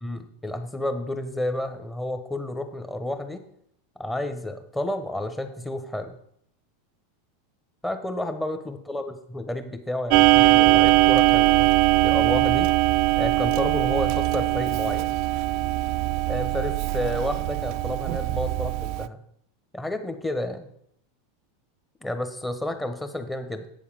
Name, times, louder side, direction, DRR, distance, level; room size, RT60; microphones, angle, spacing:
voice 1, 0.0-3.4 4.0-6.2 7.8-11.7 12.0-12.7 13.2-15.2 16.3-19.2 19.7-20.7 22.0-23.7, left 1 dB, 10° left, 8 dB, 1.1 m, -30 dB
Clock, 10.1-19.1, right 18 dB, 50° right, 0.3 m, -21 dB
8.3 x 7.0 x 5.1 m, 0.69 s
figure-of-eight pair, 85°, 0 cm